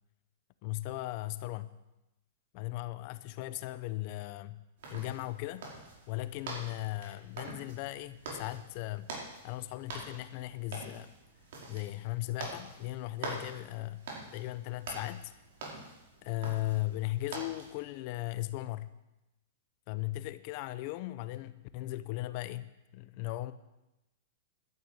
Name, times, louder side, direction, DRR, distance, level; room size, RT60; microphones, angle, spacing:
voice 1, 0.6-1.8 2.5-4.6 4.9-5.7 6.1-9.1 9.4-11.1 11.7-14.1 14.3-15.3 16.2-18.9 19.9-23.5, left 17 dB, 40° left, 14 dB, 0.7 m, -37 dB
sound 1, 4.8-17.7, right 3 dB, 60° right, 4.6 m, -45 dB
12.0 x 9.5 x 8.1 m, 0.96 s
supercardioid pair, 160°, 0 cm